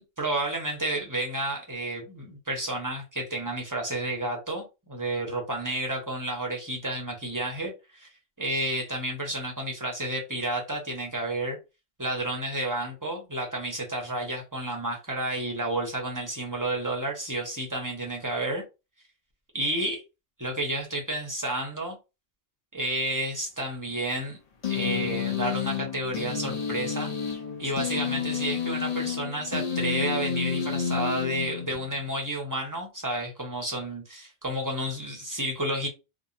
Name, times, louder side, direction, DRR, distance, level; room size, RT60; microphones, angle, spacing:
voice 1, 0.0-8.1 8.4-11.6 12.0-18.6 19.5-20.0 20.4-22.0 22.7-24.4 24.7-27.1 27.6-35.9, right 1 dB, 20° right, 0.5 m, -31 dB
sound 1, 24.6-32.0, left 7 dB, 50° left, 0.5 m, -30 dB
2.7 x 2.2 x 2.5 m
omnidirectional pair, 1.2 m